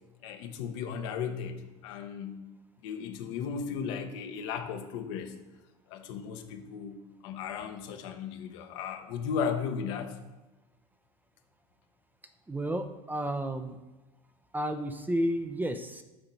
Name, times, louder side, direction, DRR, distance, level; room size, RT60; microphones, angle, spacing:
voice 1, 0.2-2.4 2.8-5.3 5.9-10.2, left 6 dB, 65° left, 5 dB, 1.0 m, -35 dB
voice 2, 12.5-13.8 14.5-16.0, right 1 dB, 10° right, 8 dB, 0.6 m, -31 dB
7.0 x 3.9 x 5.4 m, 1.1 s
hypercardioid pair, 90°, 17 cm